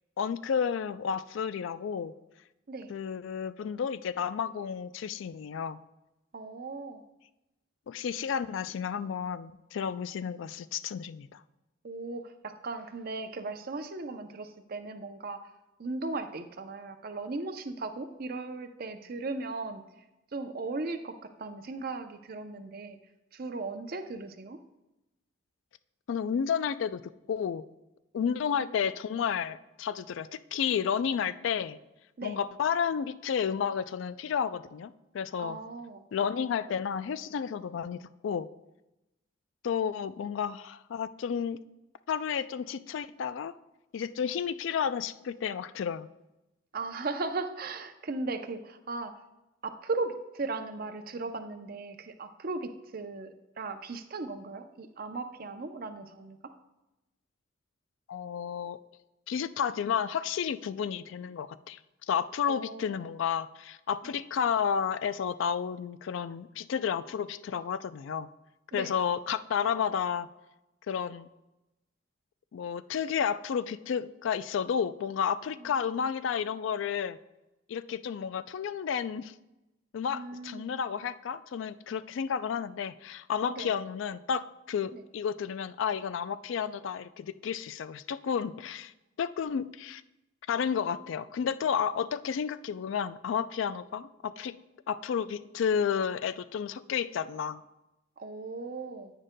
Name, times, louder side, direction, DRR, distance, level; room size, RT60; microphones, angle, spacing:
voice 1, 0.2-2.1 2.9-5.8 7.9-11.4 26.1-27.0 27.3-27.6 28.1-31.8 32.2-35.6 36.1-38.5 39.6-41.6 42.1-43.5 43.9-46.1 58.1-58.8 59.3-61.8 62.1-68.3 68.7-70.3 70.9-71.3 72.5-77.2 77.7-79.3 79.9-88.9 89.2-90.0 90.5-94.6 94.9-97.6, left 7 dB, 70° left, 15 dB, 0.3 m, -31 dB
voice 2, 6.3-7.0 11.8-15.4 15.8-19.8 20.3-23.0 23.3-24.6 28.2-28.5 32.2-32.4 35.4-36.0 46.7-49.1 49.6-53.3 53.6-56.4 62.5-63.0 64.0-64.1 68.7-69.0 75.6-75.7 80.1-80.7 83.5-83.7 84.9-85.0 98.2-99.1, right 3 dB, 50° right, 8 dB, 0.6 m, -37 dB
9.9 x 9.1 x 2.2 m, 0.95 s
head